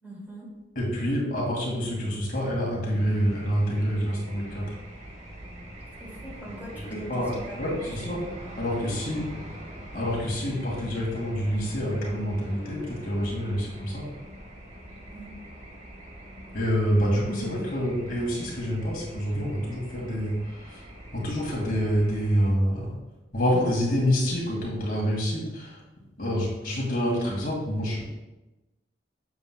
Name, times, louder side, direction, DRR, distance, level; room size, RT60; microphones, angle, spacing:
voice 1, 0.0-0.6 6.0-8.6 15.1-15.4, right 1 dB, 10° right, -6 dB, 2.5 m, -43 dB
voice 2, 0.8-4.7 6.7-7.3 7.6-8.2 8.6-9.3 9.9-14.1 16.5-20.8 21.1-22.9 23.3-25.8 26.2-28.0, equal, 55° left, -3 dB, 2.1 m, -27 dB
sound 1, 2.9-22.5, equal, 40° right, 1.3 m, -43 dB
7.7 x 7.6 x 2.3 m, 1.0 s
head